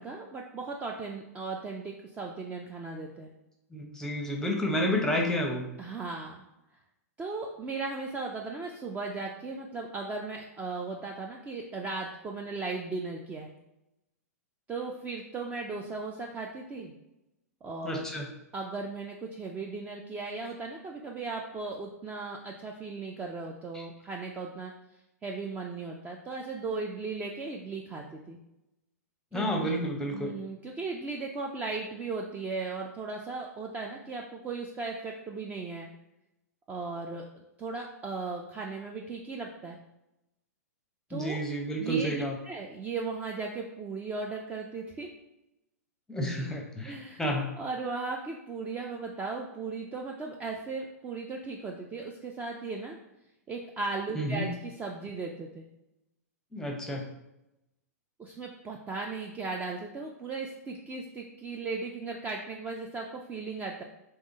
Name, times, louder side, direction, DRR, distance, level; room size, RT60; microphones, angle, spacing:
voice 1, 0.0-3.3 5.8-6.5 7.2-13.5 14.7-16.9 17.6-18.1 18.5-24.7 25.2-28.4 29.3-29.7 30.1-35.9 36.7-37.2 37.6-39.8 41.1-41.4 41.8-45.1 46.9-47.2 47.6-53.0 53.5-55.7 58.2-63.8, right 3 dB, 15° right, 0 dB, 0.4 m, -37 dB
voice 2, 3.7-5.7 17.8-18.3 23.7-23.8 29.3-30.3 41.1-42.4 46.1-47.5 54.1-54.5 56.5-57.1, equal, 5° left, 1 dB, 0.8 m, -30 dB
3.6 x 3.2 x 4.0 m, 0.90 s
hypercardioid pair, 110°, 9 cm